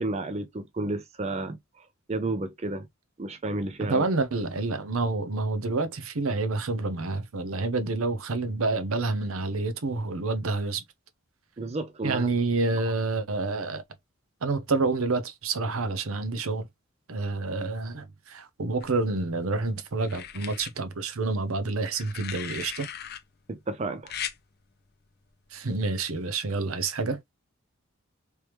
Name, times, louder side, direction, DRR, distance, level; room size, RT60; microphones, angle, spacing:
voice 1, 0.0-2.9 3.2-4.1 11.6-12.3 23.5-24.2, right 2 dB, 30° right, 0.4 m, -32 dB
voice 2, 3.8-10.8 12.0-13.8 14.4-16.7 17.1-22.9 25.5-27.2, right 3 dB, 70° right, 0.7 m, -28 dB
sound 1, 18.8-19.5 20.0-20.7 21.9-23.2 24.1-24.4 25.7-26.0, left 9 dB, 45° left, 0.5 m, -38 dB
3.4 x 3.1 x 3.0 m
head